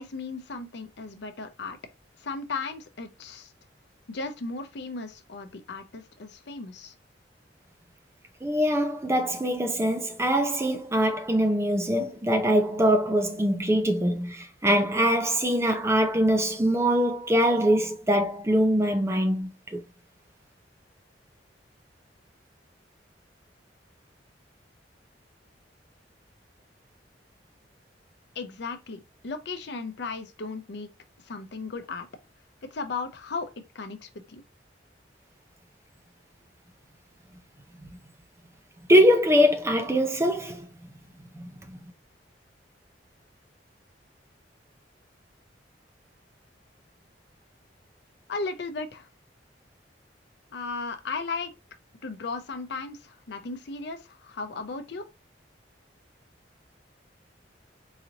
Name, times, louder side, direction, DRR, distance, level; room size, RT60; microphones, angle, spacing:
voice 1, 0.0-1.8 2.2-3.5 4.1-6.9 28.4-30.9 31.3-32.1 32.6-34.4 48.3-49.1 50.5-51.6 52.0-55.0, left 4 dB, 65° left, 0.6 m, -36 dB
voice 2, 8.4-19.8 38.9-40.7 41.7-41.8, equal, 15° right, 0.5 m, -23 dB
3.9 x 2.9 x 2.8 m
head